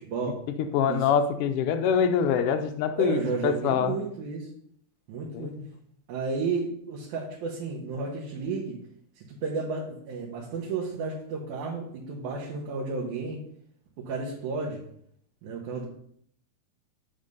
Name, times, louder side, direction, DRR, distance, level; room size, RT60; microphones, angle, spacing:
voice 1, 0.0-0.4 0.9-1.1 3.0-4.5 5.1-5.6 6.1-8.8 9.2-13.4 14.1-14.8 15.4-15.9, right 4 dB, 85° right, 2.5 m, -32 dB
voice 2, 0.7-4.0 5.3-5.7, left 7 dB, 85° left, 1.2 m, -25 dB
7.9 x 3.6 x 5.3 m
omnidirectional pair, 3.3 m